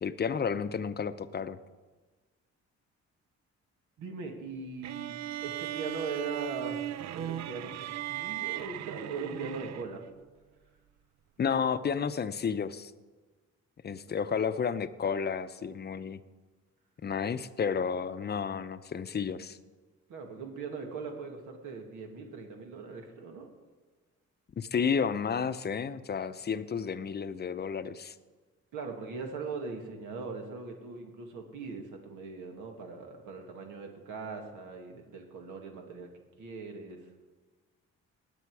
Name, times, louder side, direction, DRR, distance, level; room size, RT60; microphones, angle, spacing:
voice 1, 0.0-1.6 11.4-12.9 13.8-16.2 17.0-19.6 24.6-28.1, left 6 dB, 35° left, 13 dB, 0.7 m, -31 dB
voice 2, 4.0-5.2 5.4-10.0 20.1-23.5 28.7-36.1 36.4-37.0, right 4 dB, 85° right, 3 dB, 2.1 m, -40 dB
sound 1, 4.8-10.1, right 13 dB, 65° right, 0.5 m, -37 dB
17.5 x 9.2 x 4.8 m, 1.3 s
cardioid pair, 90°, 30 cm